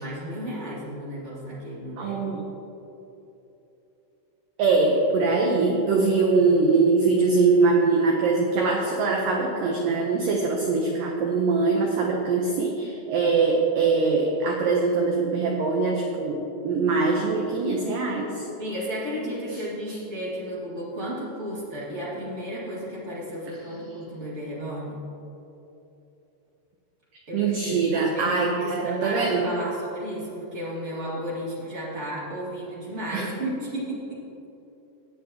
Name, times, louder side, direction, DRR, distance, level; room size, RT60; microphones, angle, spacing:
voice 1, 0.0-2.2 18.6-25.0 27.3-34.2, equal, 50° right, -7 dB, 0.8 m, -33 dB
voice 2, 2.0-2.4 4.6-18.5 19.9-20.0 27.3-29.5 33.1-33.3, right 4 dB, 85° right, 0 dB, 1.9 m, -22 dB
19.0 x 7.8 x 2.9 m, 3.0 s
omnidirectional pair, 5.1 m